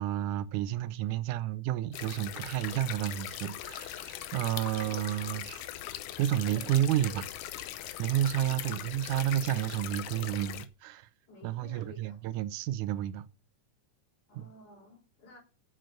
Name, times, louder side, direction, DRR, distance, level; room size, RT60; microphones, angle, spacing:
voice 1, 0.0-5.6 6.2-7.2 8.0-11.1 11.4-13.3 14.4-14.5, right 12 dB, 85° right, 2.2 m, -31 dB
sound 1, 1.9-10.7, left 12 dB, 85° left, 2.3 m, -40 dB
voice 2, 6.4-7.2 8.4-8.9 11.3-12.2 14.3-15.4, left 2 dB, 70° left, 5.3 m, -53 dB
7.7 x 7.6 x 6.5 m
omnidirectional pair, 3.5 m